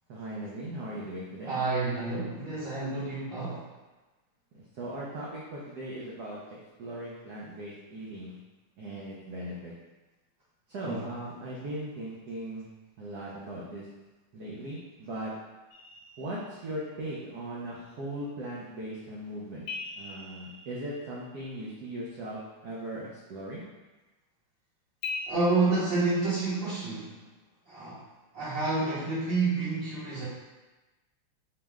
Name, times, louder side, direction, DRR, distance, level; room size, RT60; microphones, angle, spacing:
voice 1, 0.1-1.6 4.5-6.4 6.8-8.4 8.8-9.7 10.7-12.6 13.0-13.9 14.3-15.3 16.2-19.7 20.0-23.6, right 1 dB, 80° right, -5 dB, 0.9 m, -38 dB
voice 2, 1.4-3.7 10.8-11.1 25.3-27.2 27.7-28.0 28.3-30.3, right 3 dB, 60° right, -11 dB, 1.5 m, -29 dB
sound 1, 15.7-17.0 19.7-21.7 25.0-25.3, left 4 dB, 75° left, 1.2 m, -40 dB
4.8 x 2.1 x 3.5 m, 1.1 s
omnidirectional pair, 2.4 m